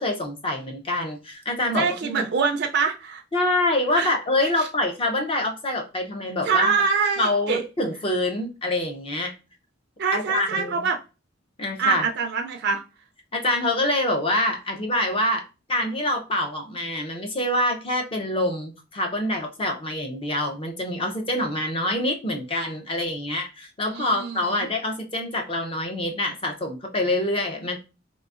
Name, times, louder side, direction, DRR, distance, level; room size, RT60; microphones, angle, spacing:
voice 1, 0.0-2.2 3.3-6.8 7.2-9.3 10.1-10.8 11.6-12.1 13.3-27.8, left 1 dB, 30° left, 0.6 m, -26 dB
voice 2, 1.7-3.2 3.9-4.1 4.6-4.7 6.4-7.6 10.0-11.0 11.8-12.8 23.9-24.7, right 5 dB, 55° right, 0.4 m, -24 dB
3.7 x 2.6 x 2.4 m
head